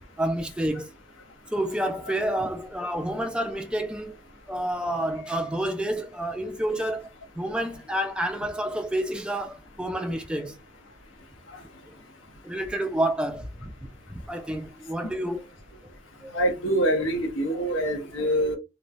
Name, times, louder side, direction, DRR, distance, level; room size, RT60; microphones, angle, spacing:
voice 1, 0.2-0.9 1.5-4.2 4.5-7.1 7.4-10.6 12.4-13.7 14.1-15.4 16.2-16.5, right 1 dB, 5° right, 0.3 m, -29 dB
voice 2, 16.3-18.6, right 1 dB, 85° left, 0.9 m, -25 dB
3.1 x 2.1 x 2.5 m
head